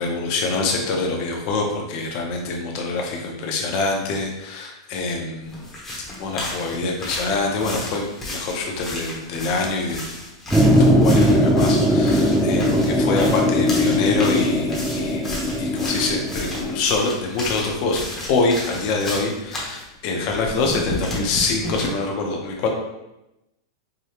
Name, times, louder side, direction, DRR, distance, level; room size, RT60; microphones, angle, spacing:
voice 1, 0.0-5.6 6.2-8.0 8.3-10.0 10.8-15.2 15.6-18.0 18.3-22.7, left 3 dB, 40° left, 0 dB, 0.7 m, -25 dB
sound 1, 5.5-19.8 20.3-21.9, left 1 dB, 10° left, 0.9 m, -33 dB
sound 2, 10.5-16.8, equal, 5° right, 0.3 m, -19 dB
4.9 x 2.3 x 2.9 m, 0.93 s
supercardioid pair, 155°, 2 cm